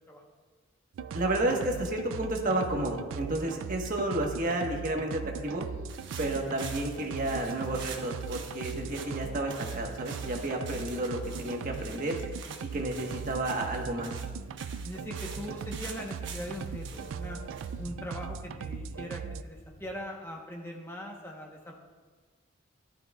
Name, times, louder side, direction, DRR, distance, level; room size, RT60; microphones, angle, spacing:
Viena - Dance loop, 0.9-19.4, right 6 dB, 85° right, 0.3 m, -39 dB
voice 1, 1.1-5.6 6.2-12.1 12.7-14.1, right 1 dB, 40° right, 1 dB, 1.3 m, -31 dB
sound 1, 5.9-18.7, right 6 dB, 65° right, 1.1 m, -47 dB
sound 2, 12.7-19.9, equal, 75° left, 2.3 m, -53 dB
voice 2, 14.8-17.4 17.8-21.8, equal, 10° left, 0 dB, 1.0 m, -41 dB
14.5 x 12.5 x 2.3 m, 1.4 s
head